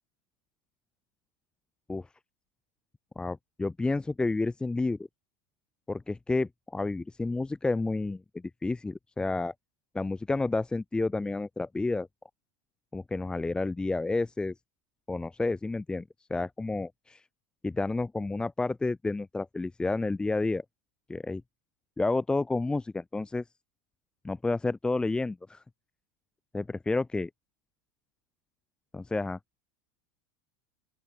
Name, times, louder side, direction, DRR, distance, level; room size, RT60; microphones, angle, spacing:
voice 1, 3.2-5.0 5.9-8.2 8.6-9.5 9.9-12.1 12.9-14.5 15.1-16.0 16.3-17.2 17.6-20.6 21.1-21.4 22.0-23.4 24.2-25.6 26.5-27.3 28.9-29.4, left 3 dB, 5° left, 2.5 m, -30 dB
open air
supercardioid pair, 170°, 13 cm